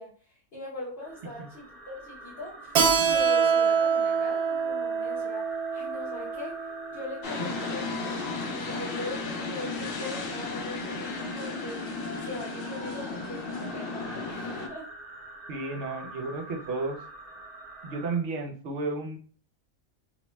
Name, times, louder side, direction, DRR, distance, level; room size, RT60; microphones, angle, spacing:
voice 1, 0.0-2.7 3.1-6.6 6.9-11.9 12.3-14.9, left 2 dB, 45° left, -8 dB, 1.0 m, -40 dB
sound 1, 1.0-18.2, right 1 dB, 10° right, 0.7 m, -46 dB
Keyboard (musical), 2.8-8.0, right 6 dB, 85° right, 1.1 m, -26 dB
sound 2, 7.2-14.7, left 3 dB, 80° left, 0.5 m, -34 dB
voice 2, 15.5-17.0 17.8-19.2, right 3 dB, 60° right, 2 dB, 0.8 m, -32 dB
2.6 x 2.1 x 3.0 m, 0.42 s
omnidirectional pair, 1.5 m